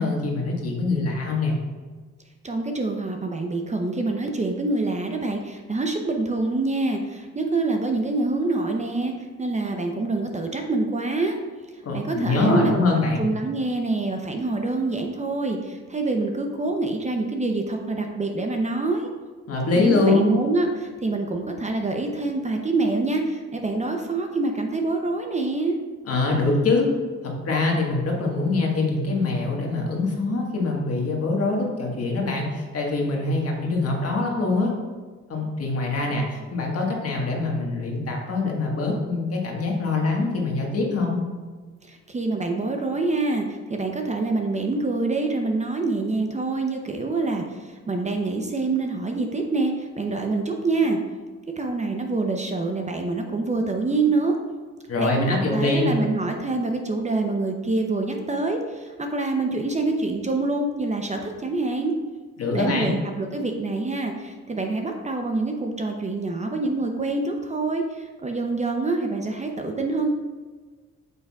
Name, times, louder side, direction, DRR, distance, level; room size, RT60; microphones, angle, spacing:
voice 1, 0.0-1.6 11.8-13.3 19.5-20.3 26.0-26.9 27.2-34.7 35.3-41.2 54.9-56.0 62.4-62.9, left 3 dB, 50° left, -1 dB, 1.5 m, -24 dB
voice 2, 2.4-11.4 11.9-12.9 13.2-19.1 19.7-25.8 41.8-51.0 51.6-54.4 55.0-61.9 62.5-70.1, right 3 dB, 25° right, 3 dB, 0.6 m, -26 dB
8.2 x 5.6 x 2.4 m, 1.4 s
cardioid pair, 90°, 30 cm